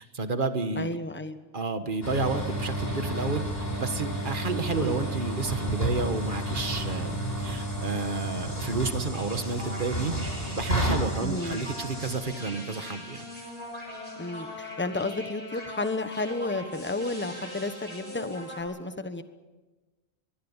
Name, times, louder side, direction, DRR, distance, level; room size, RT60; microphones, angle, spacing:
voice 1, 0.0-1.0 1.5-3.5 3.8-10.1 10.5-13.2, right 4 dB, 50° right, 9 dB, 1.6 m, -31 dB
voice 2, 0.7-1.4 4.7-5.0 11.2-11.6 14.2-19.2, left 2 dB, 10° left, 10 dB, 1.2 m, -32 dB
sound 1, 2.0-12.1, right 1 dB, 60° left, 7.4 m, -31 dB
sound 2, 9.1-18.6, left 1 dB, 25° right, 7.4 m, -41 dB
25.0 x 20.5 x 7.3 m, 1.2 s
omnidirectional pair, 1.2 m